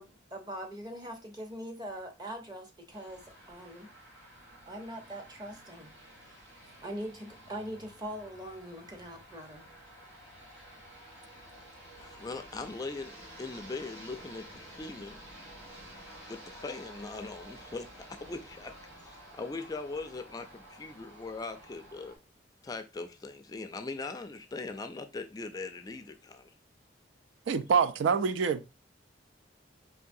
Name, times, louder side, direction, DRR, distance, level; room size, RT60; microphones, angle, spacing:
voice 1, 0.0-3.9 4.7-6.4 6.8-9.7, right 1 dB, 20° right, 0.8 m, -42 dB
sound 1, 2.9-22.2, right 1 dB, 70° right, 2.2 m, -51 dB
voice 2, 12.0-15.2 16.3-18.7 19.0-22.2 22.6-26.5, left 3 dB, 20° left, 0.3 m, -40 dB
voice 3, 27.5-28.7, right 6 dB, 85° right, 0.3 m, -26 dB
4.7 x 3.1 x 2.6 m
head